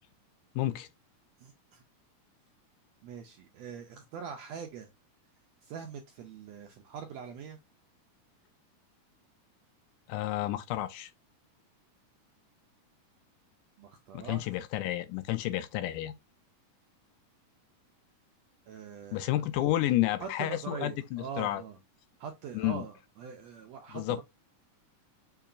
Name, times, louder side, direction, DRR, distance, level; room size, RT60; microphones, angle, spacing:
voice 1, 0.6-0.9 10.1-11.1 14.1-16.1 19.1-21.6 22.5-22.8 23.9-24.2, left 14 dB, 80° left, 2.0 m, -30 dB
voice 2, 1.4-1.8 3.0-4.9 5.6-7.6 13.8-14.4 18.7-19.3 20.2-21.8 22.2-24.2, right 7 dB, 80° right, 1.6 m, -43 dB
6.9 x 2.9 x 2.4 m
omnidirectional pair, 3.7 m